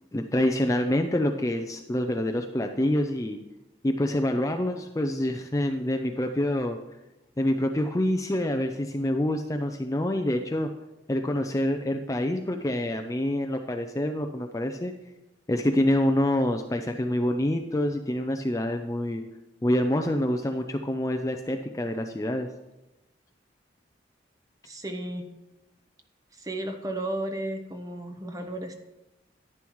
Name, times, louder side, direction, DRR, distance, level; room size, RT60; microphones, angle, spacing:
voice 1, 0.1-3.4 3.8-6.8 7.4-10.7 11.1-14.9 15.5-19.2 19.6-22.5, left 1 dB, 15° left, 5 dB, 0.4 m, -26 dB
voice 2, 24.7-25.3 26.3-28.7, right 1 dB, 20° right, 5 dB, 0.9 m, -33 dB
11.0 x 10.5 x 3.1 m, 0.97 s
head